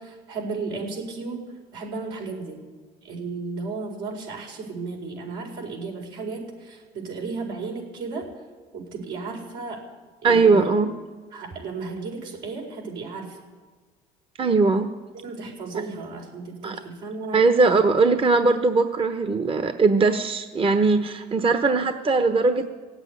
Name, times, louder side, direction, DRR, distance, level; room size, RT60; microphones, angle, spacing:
voice 1, 0.0-2.6 3.0-8.4 8.7-9.9 10.2-10.7 11.3-13.4 15.1-17.5, right 4 dB, 80° right, 0 dB, 4.7 m, -34 dB
voice 2, 10.2-10.9 14.4-14.9 15.7-15.8 16.6-16.7 17.3-22.7, right 3 dB, 30° right, 8 dB, 1.1 m, -20 dB
16.5 x 8.2 x 9.6 m, 1.4 s
supercardioid pair, 80°, 17 cm